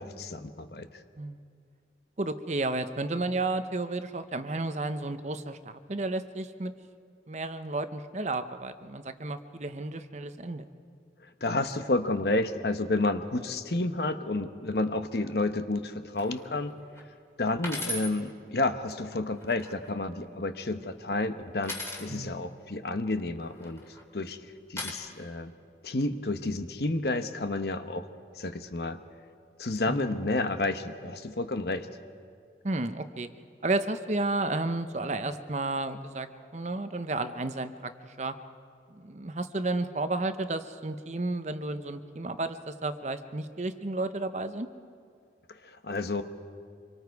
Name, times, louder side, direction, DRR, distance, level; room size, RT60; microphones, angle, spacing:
voice 1, 0.0-1.0 11.2-16.7 17.4-23.8 24.1-25.5 25.8-28.1 28.3-29.0 29.6-31.9 45.5-46.2, left 2 dB, 60° left, 9 dB, 1.0 m, -30 dB
voice 2, 2.2-6.7 7.3-10.7 22.1-22.4 29.9-30.2 32.6-33.3 33.6-36.3 36.5-38.3 38.9-44.7, right 2 dB, 40° right, 10 dB, 0.8 m, -32 dB
sound 1, 16.2-16.5 17.0-17.1 17.6-18.1 19.3-19.9 21.6-22.1 23.5-24.0 24.8-24.9, left 2 dB, 15° left, 2.4 m, -36 dB
26.5 x 23.0 x 4.7 m, 2.2 s
head